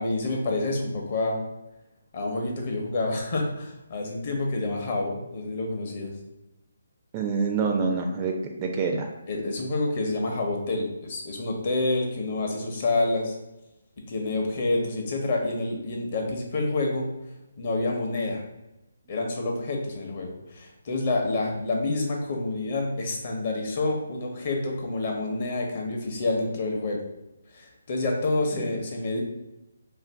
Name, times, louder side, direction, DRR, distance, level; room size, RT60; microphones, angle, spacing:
voice 1, 0.0-1.4 2.1-6.1 9.3-13.4 14.1-17.1 17.6-18.4 19.1-27.0 27.5-29.2, left 2 dB, 45° left, 0 dB, 0.7 m, -28 dB
voice 2, 7.1-9.1 28.6-28.7, right 4 dB, 25° right, 2 dB, 0.3 m, -26 dB
2.5 x 2.4 x 3.3 m, 0.97 s
hypercardioid pair, 160°, 0 cm